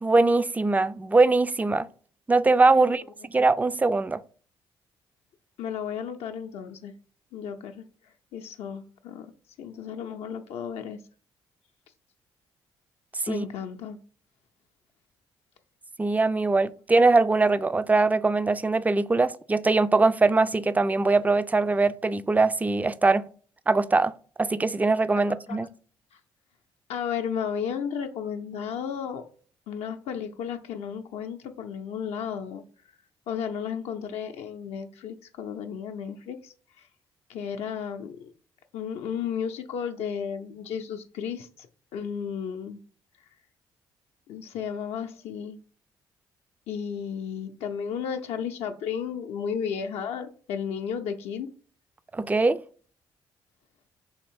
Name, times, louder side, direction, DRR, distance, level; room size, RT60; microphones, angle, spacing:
voice 1, 0.0-1.9 2.3-3.0 3.3-4.2 13.3-13.5 16.0-23.2 23.7-24.1 24.4-25.7 52.1-52.6, right 3 dB, 15° right, 0.3 m, -22 dB
voice 2, 5.6-6.9 7.3-7.8 8.3-9.3 9.6-11.0 13.3-14.0 25.2-25.6 26.9-29.2 29.7-32.6 33.3-36.5 37.3-38.3 38.7-41.7 41.9-42.8 44.3-45.6 46.7-51.5, left 7 dB, 65° left, 0.4 m, -33 dB
3.5 x 2.9 x 4.4 m
hypercardioid pair, 50°, 11 cm